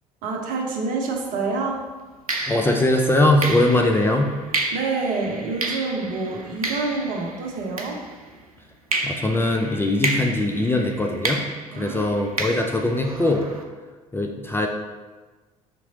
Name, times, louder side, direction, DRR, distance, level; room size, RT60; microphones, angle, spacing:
voice 1, 0.2-1.8 4.5-8.0 11.7-12.5, right 3 dB, 50° right, 0 dB, 0.8 m, -27 dB
sound 1, 1.1-1.3 2.3-8.4 8.9-13.6, right 2 dB, 90° right, 0.4 m, -31 dB
voice 2, 2.5-4.3 9.0-11.4 11.8-13.4 14.1-14.7, left 1 dB, 15° left, 2 dB, 0.4 m, -21 dB
5.2 x 2.9 x 2.8 m, 1.3 s
figure-of-eight pair, 55°, 18 cm